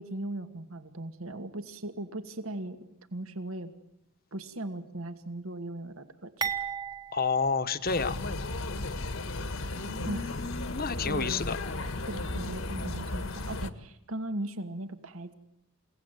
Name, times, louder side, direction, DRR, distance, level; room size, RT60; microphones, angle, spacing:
voice 1, 0.0-2.8 3.1-3.7 4.3-6.5 10.1-10.3 11.1-11.4 12.1-15.3, right 1 dB, 75° right, 8 dB, 2.2 m, -38 dB
sound 1, 6.4-8.6 8.9-9.1 10.0-10.1, right 7 dB, 20° right, 1.2 m, -37 dB
voice 2, 7.1-8.2 9.7-11.6, left 4 dB, 45° left, 11 dB, 1.2 m, -30 dB
sound 2, 7.9-13.7, left 2 dB, 65° left, 1.6 m, -35 dB
29.5 x 18.0 x 9.2 m, 0.82 s
head